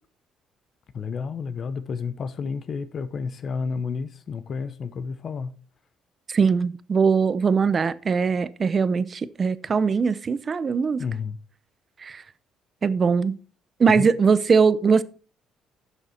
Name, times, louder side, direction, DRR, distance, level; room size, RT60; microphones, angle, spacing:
voice 1, 0.9-5.5 11.0-11.4 13.9-14.1, left 5 dB, 45° left, 0.7 m, -31 dB
voice 2, 6.3-11.0 12.0-12.2 12.8-13.4 13.8-15.0, right 5 dB, 35° right, 0.6 m, -21 dB
11.0 x 6.7 x 4.3 m
cardioid pair, 120°, 0 cm